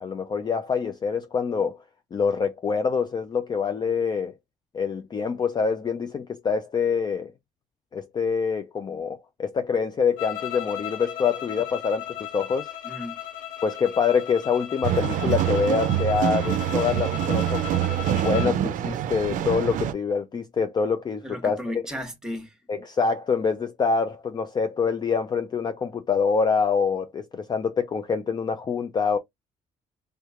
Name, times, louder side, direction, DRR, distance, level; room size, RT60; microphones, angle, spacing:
voice 1, 0.0-1.8 2.1-4.3 4.7-7.3 7.9-12.7 13.6-17.6 18.2-21.6 22.7-29.2, left 5 dB, 30° left, 0.4 m, -25 dB
sound 1, 10.2-18.6, left 12 dB, 80° left, 0.7 m, -36 dB
voice 2, 12.8-13.2 21.2-22.5, left 1 dB, 5° right, 1.1 m, -34 dB
sound 2, 14.8-19.9, right 11 dB, 65° right, 0.5 m, -25 dB
3.3 x 3.1 x 2.3 m
cardioid pair, 105°, 14 cm